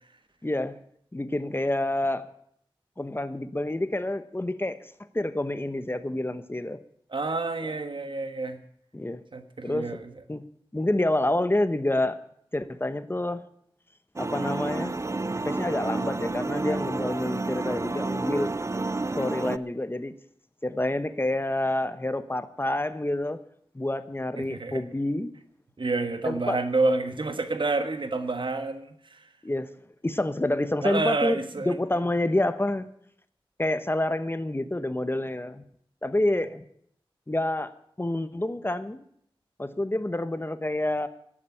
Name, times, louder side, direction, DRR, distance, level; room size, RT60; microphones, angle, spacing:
voice 1, 0.4-0.8 1.1-2.3 3.0-4.9 5.1-6.8 7.6-7.7 8.9-9.2 9.6-10.0 10.3-10.4 10.7-12.2 12.5-13.4 14.2-15.0 15.5-18.5 19.2-20.1 20.6-23.4 23.7-25.3 26.2-26.6 29.4-29.7 30.0-32.9 33.6-35.6 36.0-36.6 37.3-39.0 39.6-41.1, left 1 dB, 25° left, 12 dB, 1.0 m, -28 dB
voice 2, 7.1-8.6 9.3-10.0 24.4-24.8 25.8-29.2 30.8-31.7, right 3 dB, 65° right, 9 dB, 1.4 m, -28 dB
sound 1, 14.2-19.6, right 3 dB, 30° right, 0.5 m, -30 dB
11.5 x 8.8 x 10.0 m, 0.69 s
wide cardioid pair, 50°, 9 cm